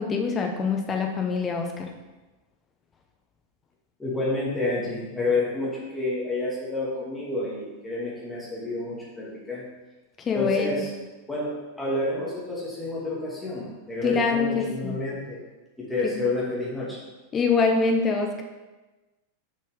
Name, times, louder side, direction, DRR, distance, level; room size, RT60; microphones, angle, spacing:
voice 1, 0.0-1.9 10.2-10.8 14.0-15.0 16.0-16.2 17.3-18.4, left 4 dB, 20° left, 3 dB, 0.9 m, -24 dB
voice 2, 4.0-9.7 10.3-10.9 11.3-15.4 15.8-17.0, left 2 dB, 5° left, -6 dB, 2.5 m, -29 dB
7.1 x 5.5 x 3.6 m, 1.2 s
figure-of-eight pair, 90°, 0 cm